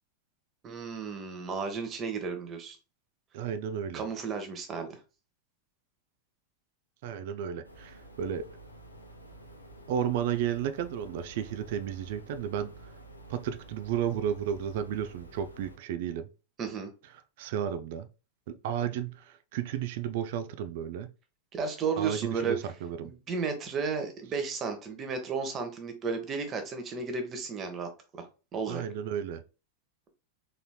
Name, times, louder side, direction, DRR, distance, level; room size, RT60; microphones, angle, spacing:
voice 1, 0.6-2.8 3.9-5.0 16.6-16.9 21.5-22.6 23.0-28.2 28.5-28.8, right 5 dB, 30° right, 0.9 m, -33 dB
voice 2, 3.3-4.0 7.0-8.5 9.9-12.7 13.3-16.3 17.4-18.1 18.5-21.1 22.0-23.1 28.7-29.4, right 9 dB, 50° right, 0.4 m, -33 dB
sound 1, 7.6-15.8, right 2 dB, 85° left, 0.6 m, -50 dB
3.9 x 3.2 x 2.2 m
figure-of-eight pair, 90°, 0 cm